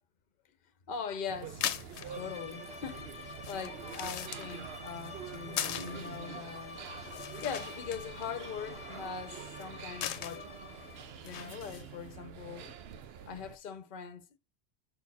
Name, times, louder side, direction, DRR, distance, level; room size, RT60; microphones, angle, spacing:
voice 1, 0.9-1.7 2.1-6.9 7.4-10.6 11.2-12.8 13.3-14.4, left 6 dB, 55° left, 0.9 m, -41 dB
sound 1, 1.3-13.6, right 8 dB, 70° right, 0.9 m, -46 dB
sound 2, 1.4-12.1, left 10 dB, 90° left, 0.9 m, -42 dB
sound 3, 2.0-11.2, left 5 dB, 30° left, 0.7 m, -48 dB
5.4 x 4.3 x 4.1 m
omnidirectional pair, 1.1 m